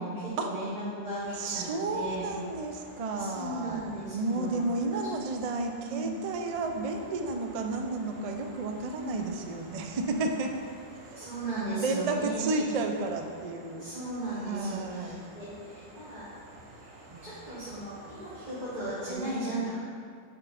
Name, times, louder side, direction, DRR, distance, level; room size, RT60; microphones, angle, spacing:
voice 1, 0.0-2.3 3.1-5.0 5.8-6.1 8.9-9.2 11.1-12.8 13.8-16.2 17.2-19.8, right 1 dB, 35° right, -13 dB, 1.5 m, -36 dB
sound 1, 1.1-19.1, right 1 dB, 85° right, 1.5 m, -51 dB
voice 2, 1.4-3.8 4.1-10.5 11.1-11.3 11.7-13.9 14.4-15.2 17.1-17.3 19.1-19.5, right 3 dB, 65° right, 4 dB, 0.3 m, -32 dB
8.2 x 3.7 x 4.0 m, 2.1 s
omnidirectional pair, 1.3 m